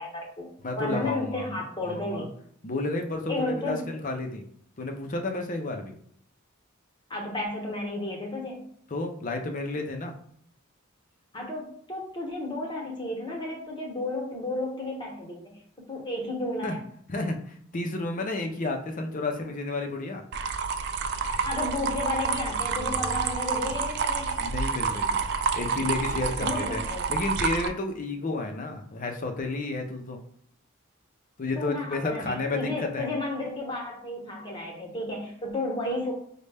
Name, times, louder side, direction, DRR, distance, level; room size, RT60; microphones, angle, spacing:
voice 1, 0.0-0.5 0.8-2.3 3.3-3.8 7.1-8.7 11.3-15.5 15.9-16.8 21.4-24.4 26.4-27.0 31.6-36.1, left 2 dB, 20° left, -1 dB, 1.0 m, -32 dB
voice 2, 0.6-1.5 1.8-2.3 2.6-4.4 4.8-6.0 8.9-10.1 16.6-16.8 17.1-20.2 24.4-25.3 25.5-26.8 27.1-30.2 31.4-33.1, left 2 dB, 40° left, 4 dB, 0.5 m, -31 dB
sound 1, 20.3-27.7, right 5 dB, 50° right, 0.3 m, -28 dB
5.2 x 2.2 x 3.3 m, 0.64 s
head